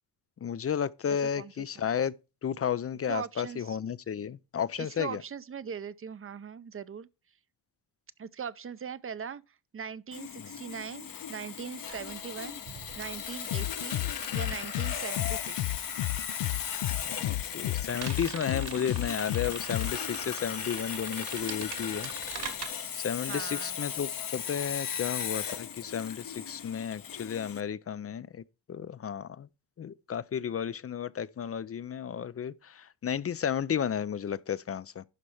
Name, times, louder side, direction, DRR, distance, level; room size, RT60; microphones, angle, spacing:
voice 1, 0.4-2.1 2.4-5.2 10.4-10.5 17.0-22.1 23.0-28.4 28.7-29.5 29.8-35.0, left 8 dB, 35° left, 0.4 m, -33 dB
voice 2, 1.1-1.9 3.1-3.8 4.8-7.1 8.2-12.6 13.0-14.0 14.3-15.9 23.3-23.8, right 7 dB, 30° right, 0.6 m, -40 dB
Sawing, 10.1-27.6, left 8 dB, 50° left, 1.0 m, -37 dB
sound 1, 11.9-15.7 15.9-22.7, right 7 dB, 65° right, 2.0 m, -44 dB
sound 2, 13.5-20.0, left 16 dB, 80° left, 0.5 m, -33 dB
12.0 x 4.2 x 4.8 m
cardioid pair, 90°, 43 cm